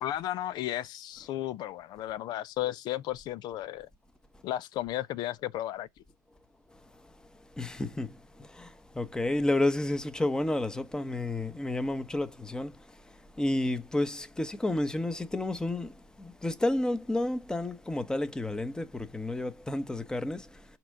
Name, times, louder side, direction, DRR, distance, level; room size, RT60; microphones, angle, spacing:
voice 1, 0.0-3.9 4.4-5.9, left 13 dB, 50° left, 0.5 m, -34 dB
voice 2, 7.5-12.8 13.0-20.6, left 1 dB, 10° left, 1.0 m, -31 dB
5.9 x 4.4 x 6.5 m
hypercardioid pair, 90°, 9 cm